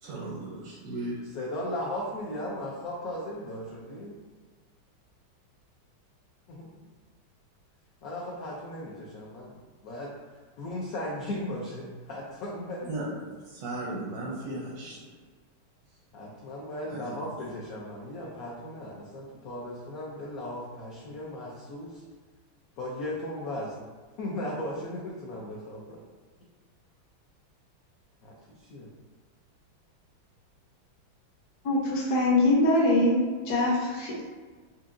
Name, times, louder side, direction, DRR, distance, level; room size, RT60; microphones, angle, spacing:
voice 1, 0.0-1.2 12.8-15.1 16.9-17.3, right 1 dB, 70° right, -3 dB, 0.9 m, -36 dB
voice 2, 1.3-4.2 6.5-6.7 8.0-9.5 9.8-10.1 10.6-12.9 13.9-14.0 16.1-22.0 22.8-23.7 24.2-26.0 28.2-28.3 28.7-28.9, left 1 dB, 75° left, -4 dB, 0.8 m, -36 dB
voice 3, 31.6-34.2, left 1 dB, 60° left, -3 dB, 1.2 m, -23 dB
4.6 x 2.7 x 2.5 m, 1.5 s
omnidirectional pair, 2.2 m